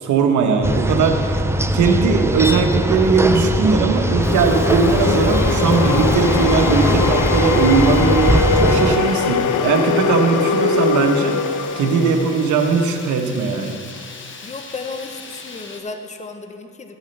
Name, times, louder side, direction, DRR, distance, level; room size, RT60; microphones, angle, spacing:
voice 1, 0.0-1.4 1.7-11.4 11.8-13.8, right 5 dB, 75° right, 4 dB, 1.0 m, -19 dB
sound 1, 0.6-9.0, right 1 dB, 10° right, 0.4 m, -20 dB
sound 2, 2.7-13.0, left 6 dB, 90° left, 0.6 m, -22 dB
Fire, 4.2-15.8, left 4 dB, 40° left, 1.1 m, -40 dB
voice 2, 14.4-17.0, left 3 dB, 25° left, 6 dB, 0.8 m, -33 dB
13.0 x 8.3 x 3.3 m, 2.4 s
cardioid pair, 90°, 30 cm